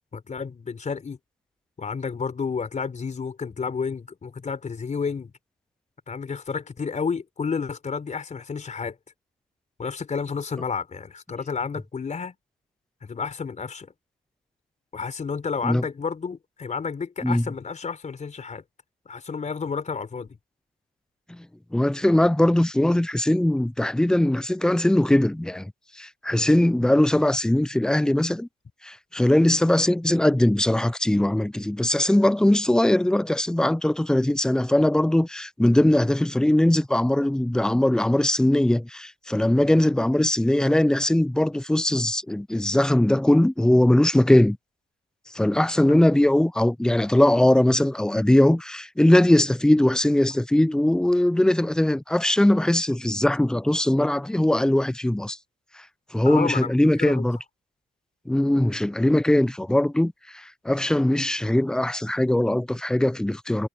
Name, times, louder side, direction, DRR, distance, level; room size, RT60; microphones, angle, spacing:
voice 1, 0.1-1.2 1.8-5.3 6.1-9.0 9.8-12.3 13.0-13.9 14.9-18.6 19.1-20.4 56.3-56.7 57.0-57.3, left 5 dB, 35° left, 4.3 m, -31 dB
voice 2, 21.7-25.7 26.0-28.5 28.8-44.6 45.3-55.4 56.1-57.4 58.3-63.7, left 1 dB, 5° left, 0.4 m, -20 dB
cardioid pair, 90°, 20 cm